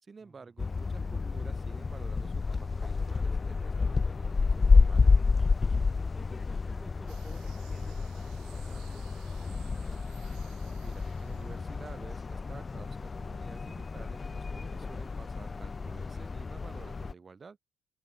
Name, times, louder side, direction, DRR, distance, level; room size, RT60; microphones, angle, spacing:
voice 1, 0.0-5.1 10.8-17.6, right 5 dB, 35° right, 4.9 m, -51 dB
sound 1, 0.6-17.1, left 4 dB, 35° left, 0.3 m, -29 dB
voice 2, 6.0-10.4, right 1 dB, 10° right, 2.7 m, -55 dB
sound 2, 7.1-12.2, right 16 dB, 70° right, 2.1 m, -59 dB
open air
hypercardioid pair, 50°, 0 cm